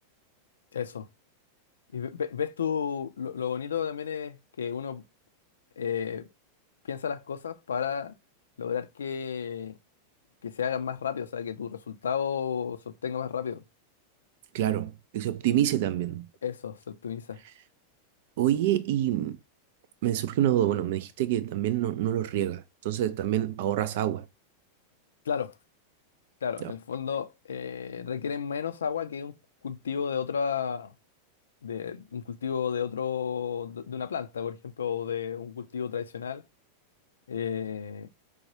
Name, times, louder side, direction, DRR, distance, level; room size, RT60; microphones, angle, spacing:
voice 1, 0.7-1.1 1.9-5.0 5.8-6.3 6.9-8.1 8.6-9.8 10.4-13.6 16.4-17.4 25.3-25.5 26.4-29.3 29.6-30.9 31.6-36.4 37.3-38.1, left 7 dB, 70° left, 0.4 m, -32 dB
voice 2, 14.5-16.3 18.4-19.4 20.0-24.3 26.6-26.7, right 12 dB, 50° right, 0.4 m, -27 dB
4.7 x 2.3 x 2.8 m
figure-of-eight pair, 90°, 0 cm